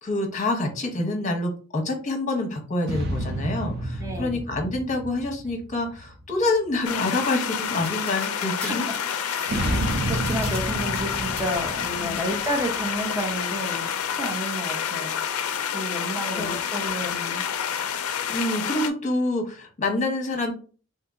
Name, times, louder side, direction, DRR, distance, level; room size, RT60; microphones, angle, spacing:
voice 1, 0.0-8.8 12.0-12.2 16.3-16.6 18.3-20.5, left 2 dB, 35° left, 3 dB, 0.9 m, -27 dB
sound 1, 2.8-6.5 9.5-13.2, right 1 dB, 50° right, 0.7 m, -31 dB
voice 2, 4.0-4.4 8.7-8.8 9.2-15.2 15.7-17.4, right 1 dB, 15° right, 3 dB, 0.6 m, -31 dB
sound 2, 6.8-18.9, left 8 dB, 80° left, 0.4 m, -29 dB
sound 3, 7.8-10.6 10.9-11.4, left 1 dB, 5° left, 1.6 m, -38 dB
2.8 x 2.7 x 3.5 m, 0.38 s
head